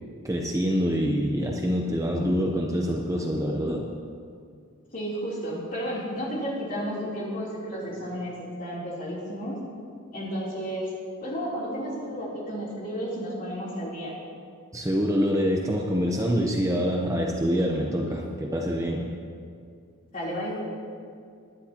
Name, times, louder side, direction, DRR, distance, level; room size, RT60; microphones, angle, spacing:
voice 1, 0.2-3.9 14.7-19.1, equal, 15° right, 0 dB, 0.7 m, -25 dB
voice 2, 4.9-9.6 10.1-10.9 11.2-14.1 20.1-20.6, equal, 40° left, -6 dB, 3.2 m, -32 dB
19.5 x 10.5 x 2.9 m, 2.2 s
head